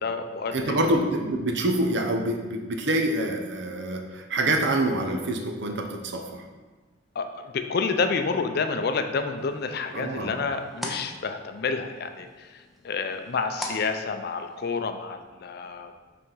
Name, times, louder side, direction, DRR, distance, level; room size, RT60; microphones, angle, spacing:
voice 1, 0.0-1.0 7.1-15.9, left 4 dB, 55° left, 7 dB, 0.5 m, -29 dB
voice 2, 0.5-6.4 9.9-10.3, right 1 dB, 65° right, 4 dB, 0.8 m, -26 dB
sound 1, 9.4-14.8, left 1 dB, ahead, 0.7 m, -42 dB
5.6 x 3.5 x 5.5 m, 1.3 s
head